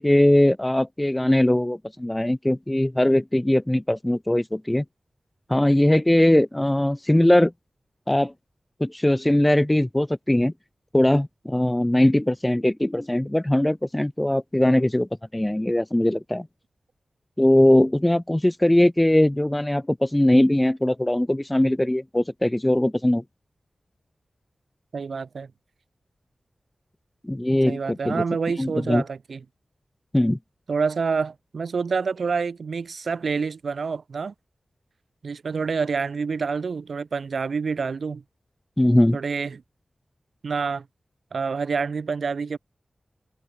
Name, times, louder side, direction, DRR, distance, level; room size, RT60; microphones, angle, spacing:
voice 1, 0.0-4.8 5.5-7.5 8.1-8.3 8.8-10.5 10.9-16.5 17.4-23.2 27.2-28.2 28.6-29.0 30.1-30.4 38.8-39.2, left 1 dB, 10° left, 0.9 m, -20 dB
voice 2, 24.9-25.5 27.7-29.4 30.7-34.3 35.2-38.2 39.1-39.6 40.4-40.8 41.3-42.6, right 5 dB, 80° right, 2.4 m, -27 dB
wide cardioid pair, 100°, 0 cm